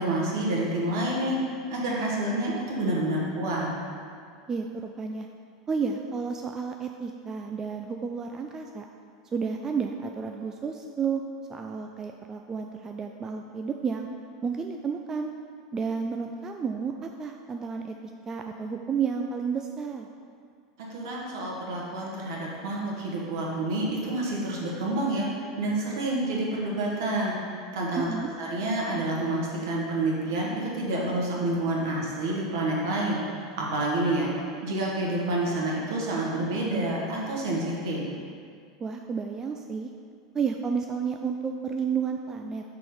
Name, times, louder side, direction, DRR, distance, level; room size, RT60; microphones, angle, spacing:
voice 1, 0.0-1.4 1.7-3.7 20.9-25.3 25.6-28.1 28.4-34.3 34.6-38.0, right 1 dB, 65° right, -3 dB, 1.4 m, -28 dB
voice 2, 4.5-5.3 5.7-8.9 9.3-11.2 11.5-14.1 14.4-15.3 15.7-18.0 18.3-20.1 28.0-28.3 38.8-39.9 40.3-42.6, right 6 dB, 25° right, 3 dB, 0.3 m, -31 dB
5.8 x 3.7 x 4.8 m, 2.3 s
figure-of-eight pair, 85°, 2 cm